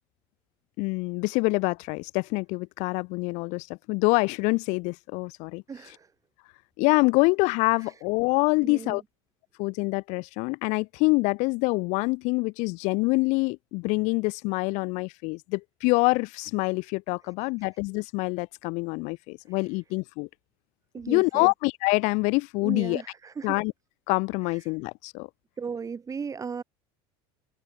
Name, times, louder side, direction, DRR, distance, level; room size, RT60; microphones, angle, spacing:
voice 1, 0.8-5.6 6.8-9.0 9.6-20.3 21.1-23.0 23.4-23.7 24.1-25.3, left 27 dB, 65° left, 0.7 m, -26 dB
voice 2, 5.7-6.1 7.8-7.9 8.6-9.0 19.5-19.6 20.9-21.5 22.6-23.6 24.5-24.6 25.6-26.6, right 6 dB, 25° right, 4.0 m, -36 dB
open air
supercardioid pair, 105°, 13 cm